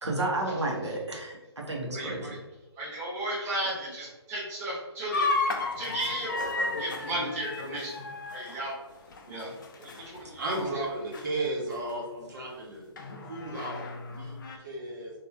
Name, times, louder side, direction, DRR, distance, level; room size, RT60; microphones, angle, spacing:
voice 1, 0.0-2.2, right 2 dB, 90° right, -2 dB, 1.1 m, -31 dB
voice 2, 1.9-2.4 2.8-5.3 5.8-8.0 8.3-8.7 9.3-10.7, right 1 dB, 15° right, -7 dB, 1.0 m, -35 dB
sound 1, 5.1-10.2 10.5-10.8 11.1-11.3 11.9-12.0 13.0-14.6, left 3 dB, 50° left, 0.5 m, -33 dB
voice 3, 10.4-14.4 14.6-15.1, right 2 dB, 45° right, -3 dB, 1.2 m, -34 dB
3.1 x 2.6 x 3.5 m, 1.1 s
figure-of-eight pair, 140°, 14 cm